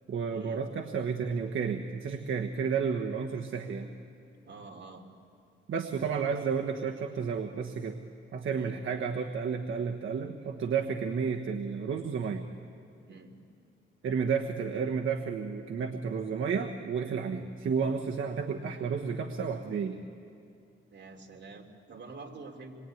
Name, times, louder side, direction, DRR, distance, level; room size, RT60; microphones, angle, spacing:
voice 1, 0.1-3.9 5.7-8.0 8.3-12.4 14.0-20.0, right 6 dB, 75° right, 3 dB, 1.3 m, -31 dB
voice 2, 4.4-5.0 8.5-8.7 13.1-13.3 20.9-22.7, right 3 dB, 60° right, 2 dB, 3.2 m, -47 dB
26.5 x 22.0 x 9.3 m, 2.5 s
cardioid pair, 105°, 21 cm